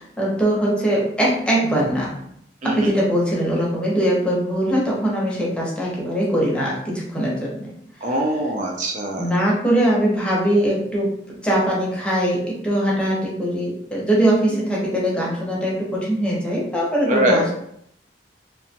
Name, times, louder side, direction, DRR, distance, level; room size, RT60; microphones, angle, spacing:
voice 1, 0.0-2.2 2.6-7.7 9.2-11.1 11.4-17.5, right 1 dB, 5° left, -5 dB, 0.7 m, -21 dB
voice 2, 2.6-2.9 8.0-9.3 17.1-17.5, equal, 45° right, 1 dB, 0.3 m, -22 dB
2.8 x 2.2 x 2.8 m, 0.71 s
head